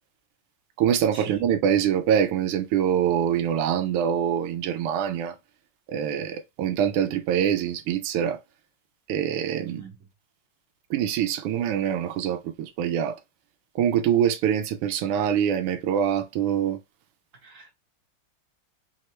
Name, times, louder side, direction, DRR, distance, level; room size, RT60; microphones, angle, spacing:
voice 1, 0.8-5.3 5.9-8.4 9.1-9.8 10.9-13.2 13.7-16.8, right 9 dB, 90° right, 1.6 m, -24 dB
voice 2, 17.4-17.7, right 5 dB, 40° right, 1.7 m, -42 dB
4.8 x 3.0 x 3.2 m
omnidirectional pair, 2.4 m